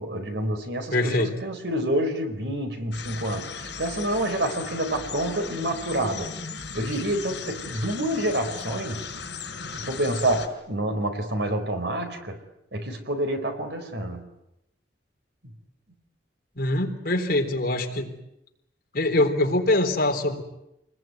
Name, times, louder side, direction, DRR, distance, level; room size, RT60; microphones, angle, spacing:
voice 1, 0.0-6.3 6.7-9.1 9.7-12.4 12.7-14.3, right 1 dB, 70° right, 7 dB, 4.5 m, -28 dB
voice 2, 0.9-1.3 16.6-18.1 18.9-20.4, left 1 dB, 55° left, 4 dB, 3.8 m, -23 dB
sound 1, 2.9-10.5, left 5 dB, 70° left, 5.7 m, -37 dB
28.0 x 20.5 x 9.4 m, 0.86 s
head